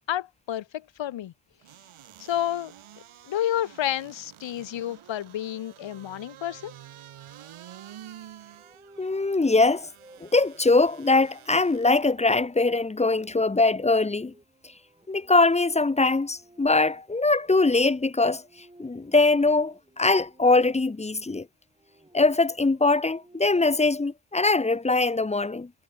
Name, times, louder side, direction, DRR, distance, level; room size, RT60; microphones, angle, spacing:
voice 1, 0.1-1.3 2.2-2.7 3.3-6.7, left 11 dB, 65° left, 0.9 m, -30 dB
sound 1, 1.6-12.1 12.6-12.7, right 11 dB, 85° right, 1.7 m, -49 dB
sound 2, 8.5-20.4 21.6-23.8, right 1 dB, 10° right, 7.6 m, -57 dB
voice 2, 9.0-9.9 10.2-14.3 15.1-18.4 18.8-21.5 22.1-25.7, left 3 dB, 15° left, 0.6 m, -22 dB
wide cardioid pair, 110°, 48 cm